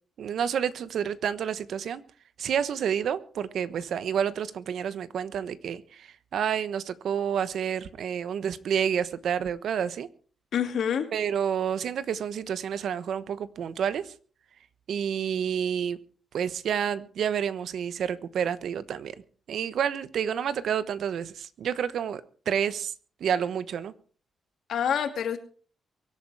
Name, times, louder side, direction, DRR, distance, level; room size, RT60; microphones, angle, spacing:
voice 1, 0.2-2.0 2.4-10.1 11.1-14.1 14.9-16.0 16.3-19.1 19.5-22.9 23.2-23.9, right 8 dB, 75° right, 1.1 m, -29 dB
voice 2, 10.5-11.1 24.7-25.4, left 8 dB, 75° left, 2.4 m, -27 dB
23.5 x 8.6 x 4.8 m
cardioid pair, 110°, 0 cm